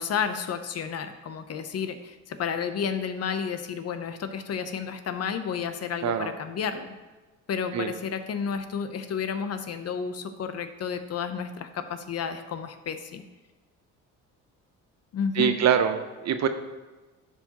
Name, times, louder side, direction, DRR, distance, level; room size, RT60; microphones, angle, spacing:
voice 1, 0.0-6.9 7.5-13.2 15.1-15.6, left 6 dB, 50° left, 9 dB, 0.7 m, -31 dB
voice 2, 15.3-16.5, right 8 dB, 55° right, 8 dB, 0.8 m, -24 dB
12.0 x 4.7 x 2.9 m, 1.2 s
cardioid pair, 85°, 32 cm